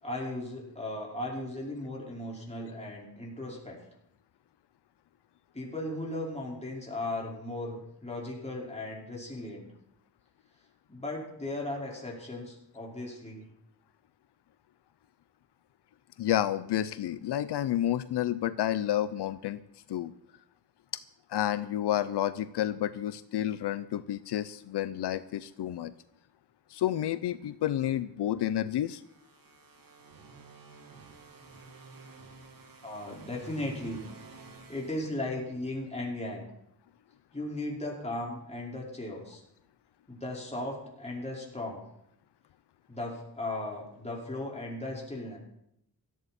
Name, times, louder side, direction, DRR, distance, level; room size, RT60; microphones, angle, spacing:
voice 1, 0.0-3.8 5.5-9.7 10.9-13.5 32.8-34.0 34.4-36.5 37.3-39.4 40.1-41.8 42.9-45.4, left 1 dB, 15° left, -3 dB, 4.7 m, -37 dB
voice 2, 16.2-19.6 19.9-20.1 21.3-25.9 26.7-29.0, left 12 dB, 80° left, 14 dB, 0.6 m, -30 dB
sound 1, 28.9-35.8, right 3 dB, 55° right, 2.1 m, -51 dB
17.0 x 14.0 x 4.3 m, 0.77 s
wide cardioid pair, 110°, 40 cm